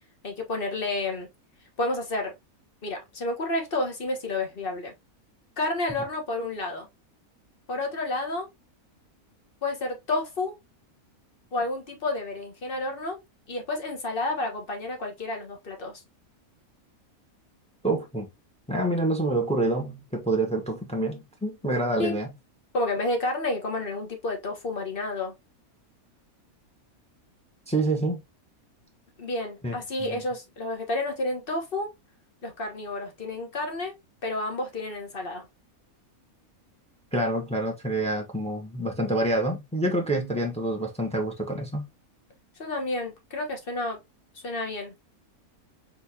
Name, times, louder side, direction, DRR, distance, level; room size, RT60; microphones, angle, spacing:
voice 1, 0.2-1.3 1.8-2.3 2.8-4.9 5.6-6.9 7.7-8.5 9.6-10.6 11.5-13.2 13.5-16.0 22.0-22.2 22.7-25.3 29.2-31.9 32.4-33.9 34.2-35.5 42.6-44.0 44.4-44.9, left 2 dB, 40° left, 1.4 m, -30 dB
voice 2, 17.8-18.3 18.7-22.3 27.7-28.2 29.6-29.7 30.0-30.2 37.1-41.9, right 2 dB, 5° left, 1.0 m, -27 dB
4.3 x 3.8 x 2.8 m
omnidirectional pair, 1.5 m